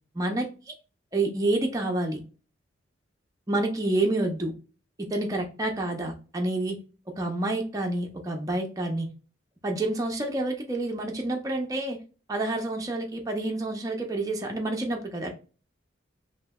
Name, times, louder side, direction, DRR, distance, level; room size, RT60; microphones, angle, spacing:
voice 1, 0.1-0.7 1.1-2.2 3.5-4.5 5.0-6.8 7.2-9.1 9.6-12.0 12.3-15.3, right 2 dB, 20° right, 1 dB, 0.5 m, -28 dB
3.1 x 2.7 x 2.2 m, 0.35 s
head